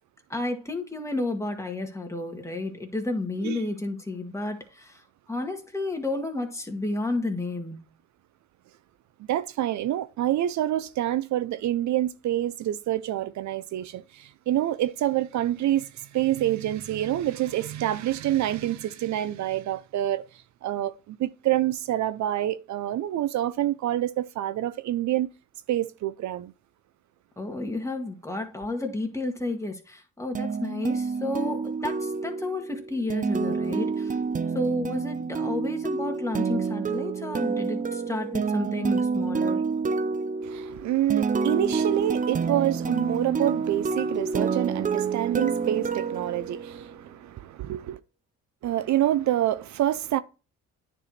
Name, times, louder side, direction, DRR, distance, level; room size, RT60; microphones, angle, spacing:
voice 1, 0.3-4.9 5.3-7.9 27.4-34.2 34.5-39.6, left 2 dB, 10° left, 2.0 m, -31 dB
voice 2, 9.3-20.3 20.6-25.3 25.7-26.5 40.4-48.0 48.6-50.2, right 13 dB, 70° right, 0.6 m, -27 dB
sound 1, 30.3-47.0, right 5 dB, 25° right, 0.6 m, -28 dB
9.8 x 4.8 x 4.1 m
cardioid pair, 90°, 30 cm